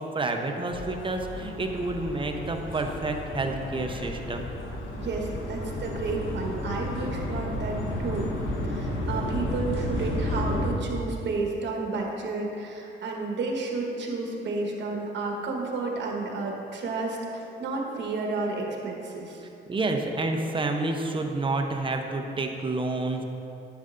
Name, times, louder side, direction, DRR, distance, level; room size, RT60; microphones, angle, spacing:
voice 1, 0.0-4.5 19.7-23.2, right 2 dB, 25° right, 3 dB, 0.7 m, -29 dB
sound 1, 0.7-10.7, left 1 dB, 85° left, 1.1 m, -32 dB
voice 2, 5.0-8.3 8.6-19.4, right 3 dB, 65° right, 0 dB, 1.3 m, -31 dB
10.0 x 6.7 x 2.6 m, 2.8 s
cardioid pair, 90°, 20 cm